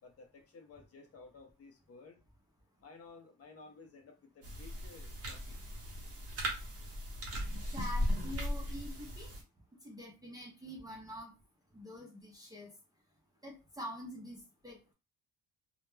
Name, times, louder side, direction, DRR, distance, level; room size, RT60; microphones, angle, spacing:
voice 1, 0.0-2.2 2.8-5.6, left 4 dB, 40° left, 4 dB, 0.5 m, -55 dB
sound 1, 4.4-9.4, equal, 40° right, 0.8 m, -37 dB
voice 2, 7.7-9.3 9.8-11.4 11.7-12.7 13.4-14.9, equal, 10° right, -2 dB, 0.4 m, -46 dB
2.2 x 2.0 x 3.0 m, 0.28 s
cardioid pair, 170°, 36 cm